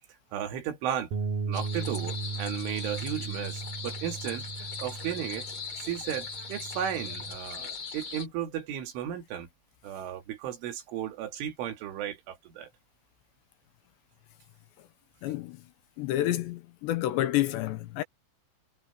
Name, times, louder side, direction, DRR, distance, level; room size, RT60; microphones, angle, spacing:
voice 1, 0.3-1.1 1.5-5.5 5.8-9.5 9.8-12.7, right 10 dB, 80° right, 4.8 m, -35 dB
Bass guitar, 1.1-7.4, right 4 dB, 55° right, 3.6 m, -37 dB
sound 1, 1.5-8.3, left 4 dB, 30° left, 3.2 m, -39 dB
voice 2, 15.2-15.6 16.0-18.0, left 14 dB, 75° left, 2.9 m, -29 dB
omnidirectional pair, 5.5 m